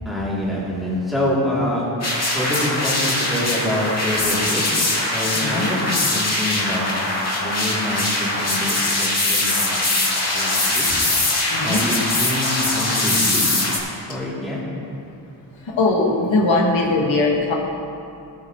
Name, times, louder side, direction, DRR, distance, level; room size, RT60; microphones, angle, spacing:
voice 1, 0.0-1.9 2.3-4.6 5.1-6.9 7.4-9.8 10.3-10.9 11.6-13.5 14.1-14.6, left 1 dB, ahead, -8 dB, 3.0 m, -26 dB
sound 1, 2.0-13.8, left 2 dB, 35° left, 2.3 m, -22 dB
voice 2, 5.3-5.7 11.5-11.8 15.8-17.5, left 2 dB, 85° left, -1 dB, 1.8 m, -20 dB
18.5 x 9.3 x 3.1 m, 2.6 s
wide cardioid pair, 140°, 45 cm